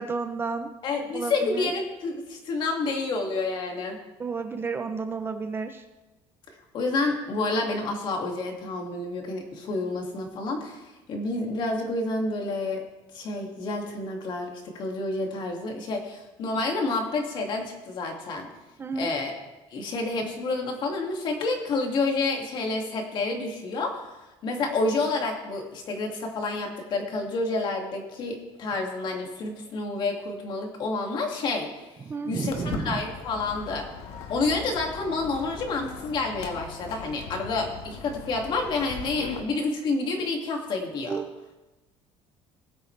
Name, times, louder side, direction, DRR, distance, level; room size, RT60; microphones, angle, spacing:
voice 1, 0.0-0.7 1.1-1.7 4.2-5.8 18.8-19.1 32.1-33.0 41.1-41.3, right 4 dB, 20° right, 8 dB, 0.6 m, -31 dB
voice 2, 0.8-4.0 6.5-12.8 13.1-18.5 19.0-19.4 19.7-31.9 32.3-33.9 34.3-41.1, left 3 dB, 45° left, 2 dB, 2.2 m, -29 dB
Walk footsteps, 32.5-39.4, left 6 dB, 70° left, 1.4 m, -39 dB
19.5 x 8.1 x 3.3 m, 1.1 s
cardioid pair, 150°, 11 cm